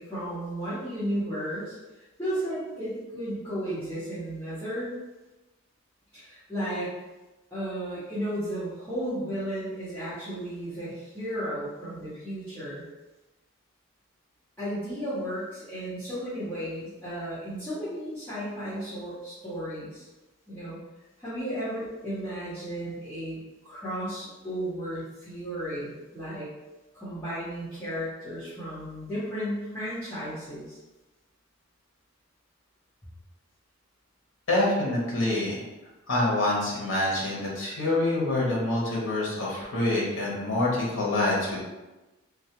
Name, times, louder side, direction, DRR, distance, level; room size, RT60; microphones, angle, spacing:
voice 1, 0.0-4.9 6.1-6.9 7.5-12.8 14.6-20.1 20.5-20.8 21.2-26.5 26.9-30.8, equal, 10° left, -15 dB, 0.7 m, -34 dB
voice 2, 34.5-35.6 36.1-41.6, left 2 dB, 65° left, -4 dB, 0.8 m, -26 dB
2.3 x 2.1 x 2.8 m, 1.1 s
head